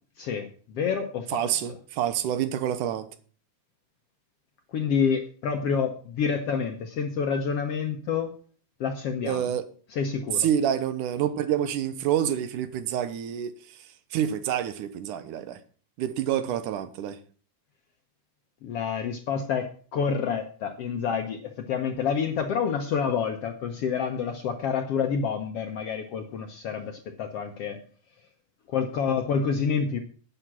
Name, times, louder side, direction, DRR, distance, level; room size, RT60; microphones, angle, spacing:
voice 1, 0.2-1.6 4.7-8.3 8.8-9.5 9.9-10.5 18.6-21.4 21.7-27.8 28.7-30.0, left 6 dB, 65° left, 1.7 m, -28 dB
voice 2, 1.3-3.1 9.3-9.7 10.4-13.5 14.1-15.6 16.0-17.2, right 10 dB, 90° right, 2.5 m, -27 dB
10.5 x 9.0 x 6.1 m
omnidirectional pair, 3.5 m